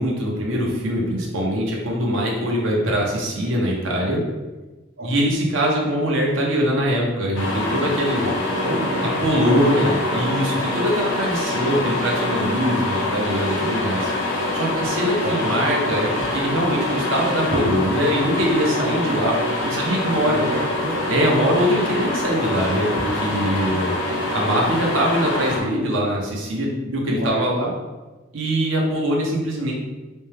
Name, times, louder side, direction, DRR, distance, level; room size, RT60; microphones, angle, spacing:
voice 1, 0.0-4.2 5.0-8.3 9.2-14.1 14.5-20.4 21.1-23.9 24.3-27.7 28.3-29.7, equal, 85° right, -2 dB, 0.9 m, -22 dB
sound 1, 7.4-25.6, left 2 dB, 80° left, 0.8 m, -25 dB
voice 2, 8.5-9.2 9.8-10.4 15.2-15.4 20.2-21.2 27.2-27.5, right 1 dB, 55° right, 2 dB, 0.5 m, -30 dB
4.2 x 2.2 x 3.3 m, 1.2 s
head